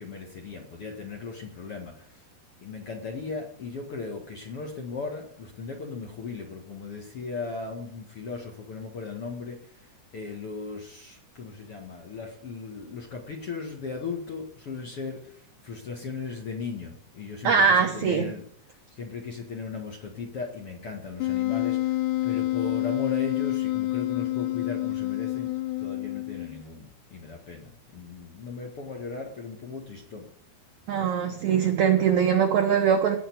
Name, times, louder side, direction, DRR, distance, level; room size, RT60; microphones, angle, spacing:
voice 1, 0.0-2.1 2.6-9.7 10.1-18.5 19.0-22.0 22.2-25.5 25.8-30.3, left 4 dB, 45° left, 1 dB, 2.1 m, -37 dB
voice 2, 17.4-18.3 30.9-33.2, right 7 dB, 75° right, 4 dB, 1.7 m, -22 dB
Wind instrument woodwind instrument, 21.2-26.6, left 17 dB, 85° left, 2.9 m, -28 dB
17.0 x 5.8 x 9.4 m, 0.65 s
omnidirectional pair, 4.9 m